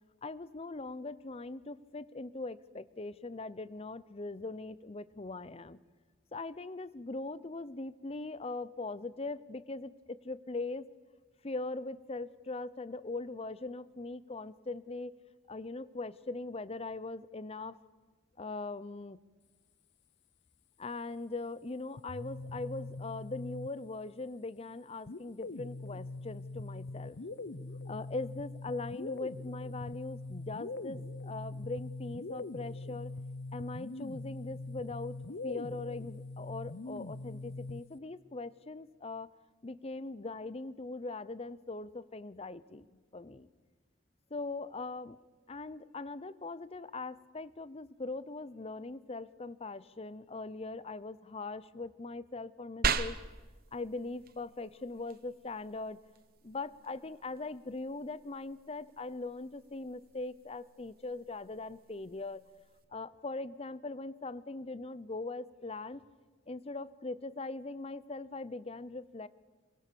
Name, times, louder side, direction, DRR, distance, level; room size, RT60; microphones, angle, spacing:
voice 1, 0.2-5.8 6.3-10.9 11.4-15.2 15.5-17.8 18.4-19.2 20.8-27.2 27.9-33.1 33.5-35.2 35.4-39.3 39.6-43.5 44.3-45.2 45.5-53.2 53.7-56.0 56.4-62.4 62.9-66.0 66.5-69.3, left 3 dB, 30° left, 18 dB, 0.7 m, -41 dB
sound 1, 22.0-24.1 25.1-38.0, left 2 dB, 65° left, 0.8 m, -42 dB
sound 2, 52.8-62.8, right 6 dB, 50° right, 0.9 m, -41 dB
25.0 x 23.0 x 6.9 m, 1.3 s
head